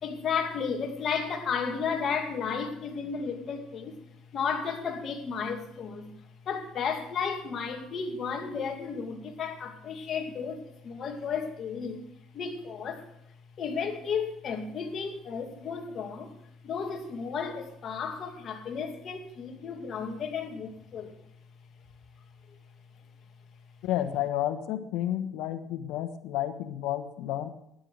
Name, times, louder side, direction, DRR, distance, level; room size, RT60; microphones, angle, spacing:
voice 1, 0.0-4.0 4.3-12.0 12.3-13.1 13.6-16.3 16.6-21.2 22.5-22.6, left 6 dB, 45° left, 2.4 m, -33 dB
voice 2, 23.8-27.5, left 12 dB, 80° left, 1.3 m, -31 dB
12.5 x 10.5 x 6.5 m
cardioid pair, 105°, 0 cm